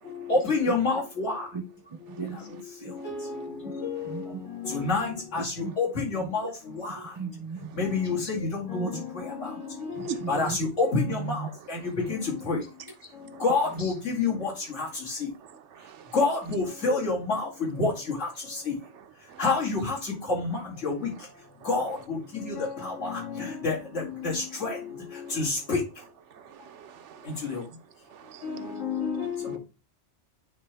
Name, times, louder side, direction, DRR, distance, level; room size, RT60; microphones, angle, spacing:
voice 1, 0.0-1.6 2.1-7.2 7.7-12.6 13.1-15.3 15.8-18.9 19.2-25.9 27.2-27.7 28.2-29.6, left 3 dB, 75° left, 2.6 m, -29 dB
voice 2, 1.5-3.0 3.6-3.7 4.0-4.4 5.6-5.8 6.2-6.5 6.9-9.5 10.0-10.7 11.8-12.0 12.5-12.7 13.8-13.9, right 4 dB, 30° right, 0.5 m, -39 dB
voice 3, 11.1-11.5 13.3-13.4 15.7-16.1 19.3-19.4 25.3-25.4 26.3-27.4 28.1-28.8, right 8 dB, 75° right, 0.9 m, -40 dB
9.3 x 3.1 x 3.3 m
omnidirectional pair, 1.3 m